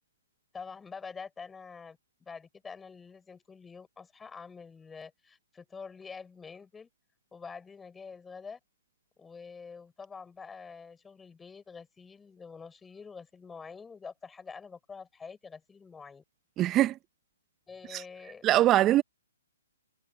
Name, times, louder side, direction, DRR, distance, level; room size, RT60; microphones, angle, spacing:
voice 1, 0.5-6.9 7.3-8.6 9.2-16.2 17.7-18.4, left 5 dB, 10° left, 7.6 m, -46 dB
voice 2, 16.6-17.0 17.9-18.0 18.4-19.0, right 14 dB, 20° right, 1.0 m, -22 dB
hypercardioid pair, 130°, 0 cm